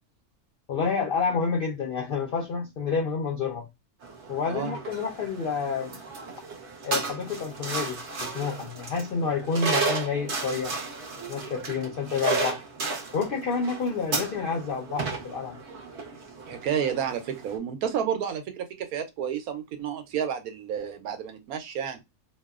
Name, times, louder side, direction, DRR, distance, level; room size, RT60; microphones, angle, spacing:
voice 1, 0.7-3.7 4.3-6.0 6.8-10.8 11.3-12.6 13.1-15.6, left 5 dB, 70° left, 0.5 m, -29 dB
sound 1, 4.0-17.6, right 3 dB, 55° right, 0.9 m, -34 dB
voice 2, 4.5-4.8 16.5-22.0, right 8 dB, 85° right, 1.1 m, -30 dB
2.8 x 2.0 x 2.2 m
omnidirectional pair, 1.5 m